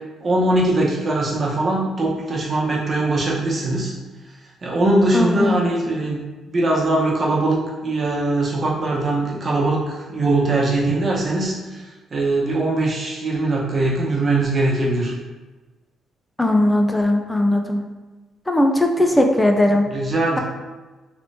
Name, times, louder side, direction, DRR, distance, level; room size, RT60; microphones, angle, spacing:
voice 1, 0.2-3.9 4.6-6.2 6.5-11.8 12.1-15.1 19.9-20.4, right 2 dB, 40° right, -3 dB, 0.9 m, -21 dB
voice 2, 5.1-5.6 16.4-17.8 18.5-19.8, left 1 dB, 10° left, 3 dB, 0.4 m, -18 dB
3.2 x 3.1 x 2.7 m, 1.2 s
cardioid pair, 90°, 0 cm